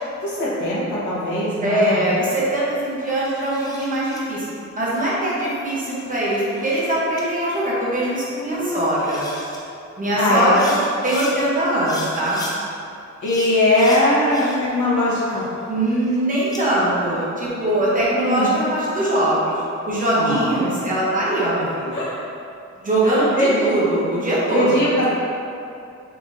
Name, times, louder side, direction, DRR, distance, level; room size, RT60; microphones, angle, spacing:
voice 1, 0.2-2.0 8.6-8.9 10.1-10.7 13.2-15.4 18.2-18.5 20.2-20.8 21.9-22.2 23.0-23.6 24.5-25.0, left 1 dB, 85° left, -8 dB, 1.1 m, -21 dB
voice 2, 1.6-4.4 4.7-9.3 10.0-10.7 11.0-12.4 15.7-22.0 22.8-24.9, right 1 dB, 30° right, -7 dB, 0.8 m, -21 dB
sound 1, 3.2-4.2 5.8-6.8 7.2-7.3 8.6-8.7 9.0-9.6 10.3-11.3 11.8-12.6 13.2-14.8 15.1-16.6, left 1 dB, 15° left, 0.4 m, -37 dB
3.7 x 3.5 x 2.5 m, 2.6 s
wide cardioid pair, 160°, 29 cm